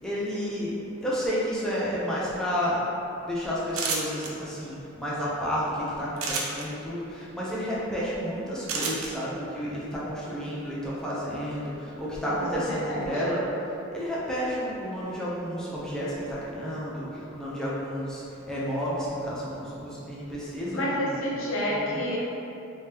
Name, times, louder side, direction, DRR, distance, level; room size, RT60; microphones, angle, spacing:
voice 1, 0.0-2.8 3.2-13.5 13.9-21.1 21.7-22.0, equal, 5° left, -8 dB, 0.6 m, -31 dB
sound 1, 3.7-4.3 6.2-6.6 8.7-9.1, right 4 dB, 85° right, 0.5 m, -29 dB
voice 2, 12.3-13.3 20.7-22.2, equal, 70° left, -5 dB, 0.8 m, -30 dB
3.4 x 3.3 x 2.9 m, 2.9 s
head